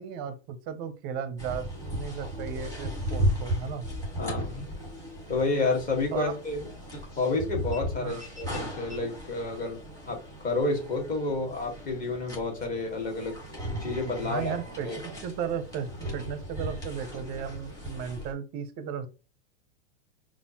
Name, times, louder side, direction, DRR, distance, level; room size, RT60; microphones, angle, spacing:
voice 1, 0.0-3.9 6.1-6.3 8.0-8.2 14.2-19.1, right 7 dB, 30° right, 0.5 m, -35 dB
sound 1, 1.4-18.3, equal, 10° left, 1.5 m, -36 dB
voice 2, 4.2-4.7 5.3-6.7 7.2-9.8 10.0-13.4 13.8-14.6 14.8-15.0, left 3 dB, 25° left, 1.4 m, -30 dB
5.3 x 2.5 x 2.8 m
supercardioid pair, 150°, 33 cm